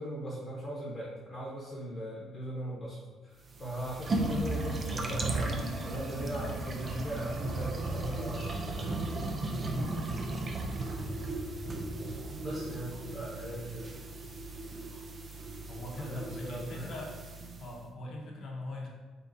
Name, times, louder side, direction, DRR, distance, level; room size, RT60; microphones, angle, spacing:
voice 1, 0.0-3.0 3.2-5.6 5.8-9.0 12.4-13.8 15.9-16.9, equal, 15° left, -7 dB, 0.9 m, -39 dB
sound 1, 3.4-17.7, right 2 dB, 30° right, 0.4 m, -36 dB
voice 2, 9.5-9.9 15.6-17.2 17.6-18.9, left 1 dB, 50° left, -3 dB, 0.8 m, -41 dB
4.1 x 3.7 x 2.7 m, 1.3 s
cardioid pair, 140°, 0 cm